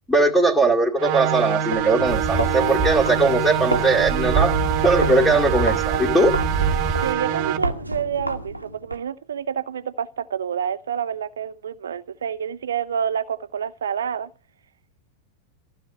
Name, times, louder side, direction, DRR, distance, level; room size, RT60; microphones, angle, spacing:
voice 1, 0.1-4.5 4.8-6.3, right 2 dB, 10° left, 2.4 m, -19 dB
sound 1, 1.0-7.6, right 12 dB, 45° right, 1.5 m, -25 dB
sound 2, 1.6-9.0, equal, 90° right, 1.3 m, -30 dB
sound 3, 2.0-7.1, right 4 dB, 15° right, 1.4 m, -27 dB
voice 2, 7.0-14.3, right 8 dB, 65° right, 0.8 m, -28 dB
15.5 x 6.9 x 8.2 m
figure-of-eight pair, 90°, 0 cm